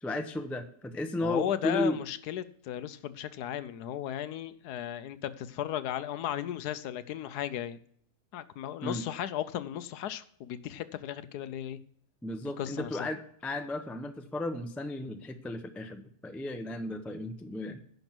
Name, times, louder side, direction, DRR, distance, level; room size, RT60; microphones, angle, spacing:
voice 1, 0.0-2.0 8.8-9.0 12.2-17.8, left 1 dB, ahead, 7 dB, 0.3 m, -34 dB
voice 2, 1.2-7.8 8.3-11.8 12.6-13.1, left 11 dB, 80° left, 14 dB, 1.2 m, -35 dB
10.5 x 6.0 x 6.0 m, 0.64 s
omnidirectional pair, 1.8 m